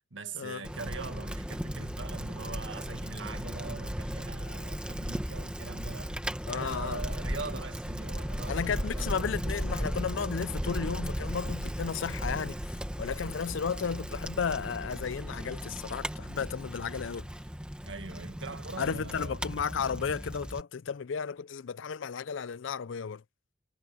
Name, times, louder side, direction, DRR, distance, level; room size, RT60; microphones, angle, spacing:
voice 1, 0.0-9.1 17.8-19.4, right 3 dB, 75° right, 2.0 m, -42 dB
Bicycle, 0.6-20.6, equal, 5° right, 1.4 m, -36 dB
voice 2, 6.5-7.0 8.5-17.3 18.8-23.2, left 6 dB, 75° left, 0.5 m, -34 dB
head